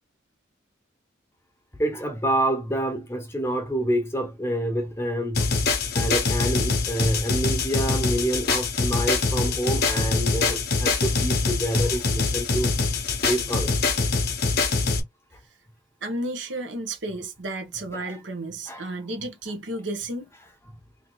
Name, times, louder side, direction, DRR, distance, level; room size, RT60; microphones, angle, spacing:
voice 1, 1.8-5.5 5.9-12.7 13.3-13.7 17.9-18.2 18.7-18.9, right 1 dB, 10° left, 0.9 m, -27 dB
sound 1, 5.3-15.0, left 4 dB, 50° left, 1.0 m, -24 dB
voice 2, 16.0-20.3, right 2 dB, 65° right, 1.1 m, -32 dB
3.0 x 2.8 x 4.0 m
head